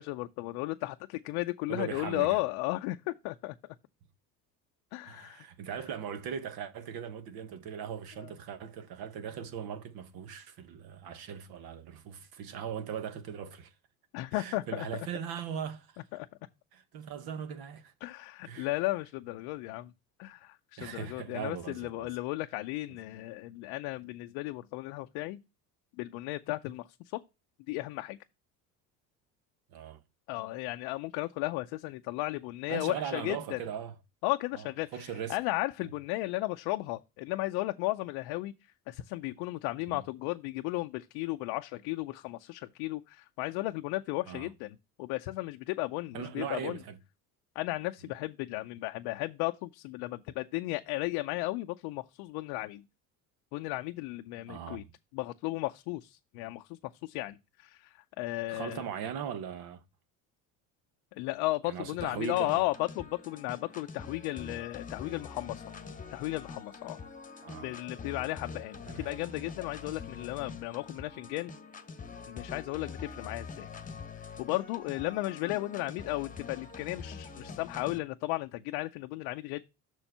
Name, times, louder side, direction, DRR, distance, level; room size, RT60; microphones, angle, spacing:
voice 1, 0.0-3.6 4.9-5.4 8.2-8.3 14.1-14.9 16.1-16.3 18.0-19.9 20.2-25.4 26.0-26.9 27.1-27.2 27.7-28.2 30.3-33.6 34.2-35.0 35.3-38.5 38.9-46.8 47.6-52.8 53.5-54.8 55.1-58.9 61.1-65.6 66.1-67.0 67.6-71.5 72.3-73.7 74.4-79.6, left 19 dB, 80° left, 0.6 m, -35 dB
voice 2, 1.7-2.4 5.0-13.7 14.3-16.0 16.7-17.9 18.4-18.7 20.8-22.1 29.7-30.0 32.7-34.0 34.5-34.7 34.9-35.4 39.9-40.0 44.3-44.5 46.1-47.0 54.5-54.9 58.5-59.8 61.6-62.6 67.4-67.7 68.9-69.1, right 8 dB, 65° right, 1.0 m, -39 dB
sound 1, 62.0-78.0, left 5 dB, 20° left, 1.1 m, -45 dB
6.3 x 4.4 x 5.5 m
supercardioid pair, 85°, 39 cm